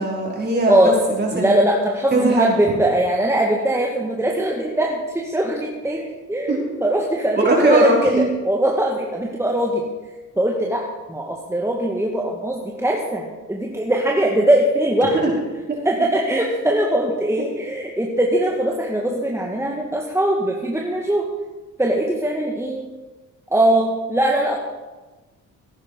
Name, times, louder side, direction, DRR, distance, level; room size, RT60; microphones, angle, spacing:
voice 1, 0.0-1.6 2.1-2.5 6.5-6.7 7.3-8.3 15.1-15.3 15.7-15.8, right 2 dB, 35° right, -3 dB, 5.1 m, -20 dB
voice 2, 1.3-9.8 10.4-15.4 15.8-21.3 21.8-22.8 23.5-24.6, right 1 dB, 10° right, -1 dB, 1.7 m, -21 dB
17.0 x 9.8 x 5.1 m, 1.2 s
cardioid pair, 90°, 30 cm